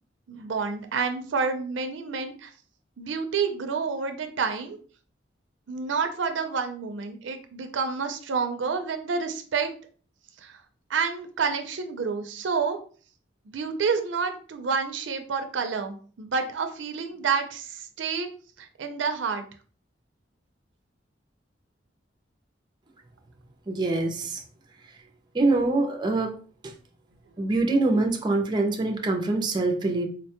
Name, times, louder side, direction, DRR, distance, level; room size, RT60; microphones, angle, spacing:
voice 1, 0.3-2.5 3.0-4.8 5.7-9.7 10.4-10.6 10.9-12.8 13.5-18.3 18.6-19.4, right 5 dB, 80° right, 6 dB, 0.5 m, -29 dB
voice 2, 23.7-24.4 25.3-26.3 26.6-26.7 27.4-30.1, right 2 dB, 25° right, 3 dB, 0.5 m, -24 dB
4.0 x 2.2 x 2.8 m, 0.42 s
head